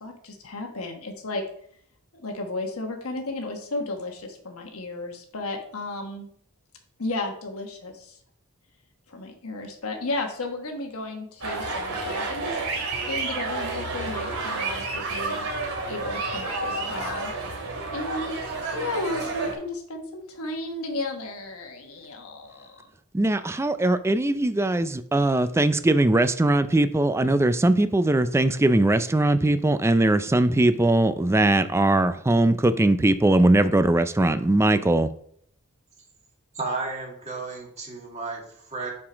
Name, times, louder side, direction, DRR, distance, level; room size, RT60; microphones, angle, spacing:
voice 1, 0.0-1.4 2.2-6.3 7.0-8.2 9.1-12.6 13.1-15.5 15.9-17.3 17.9-18.5 18.7-22.7, left 2 dB, 85° left, 3 dB, 1.3 m, -33 dB
sound 1, 11.4-19.6, right 3 dB, 85° right, 2.3 m, -30 dB
voice 2, 23.1-35.1, right 1 dB, 10° right, 12 dB, 0.4 m, -20 dB
voice 3, 36.5-38.9, right 3 dB, 30° right, -1 dB, 2.1 m, -33 dB
7.1 x 4.9 x 5.0 m, 0.64 s
head